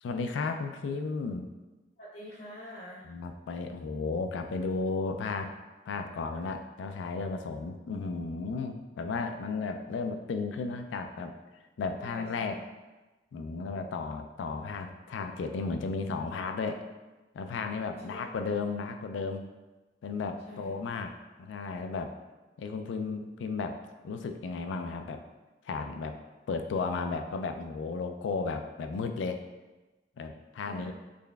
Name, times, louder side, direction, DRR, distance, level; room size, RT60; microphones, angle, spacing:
voice 1, 0.0-1.5 3.1-5.5 5.9-11.3 11.8-12.6 13.3-16.8 17.3-19.5 20.0-21.1 21.4-22.1 22.6-23.8 24.0-25.2 25.6-26.1 26.5-29.4 30.2-30.9, left 4 dB, 90° left, 6 dB, 0.3 m, -34 dB
voice 2, 2.0-3.1 12.0-12.5 18.1-18.2 20.5-20.7 30.6-30.9, equal, 55° left, -7 dB, 0.8 m, -45 dB
3.8 x 3.2 x 2.3 m, 1.1 s
head